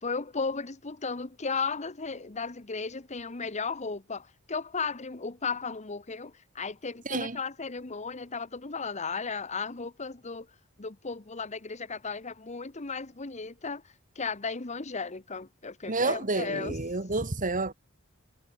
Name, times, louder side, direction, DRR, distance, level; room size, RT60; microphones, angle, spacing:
voice 1, 0.0-10.5 10.8-13.8 14.1-16.8, left 4 dB, 30° left, 1.1 m, -35 dB
voice 2, 7.1-7.4 15.9-17.7, right 3 dB, 35° right, 1.9 m, -29 dB
head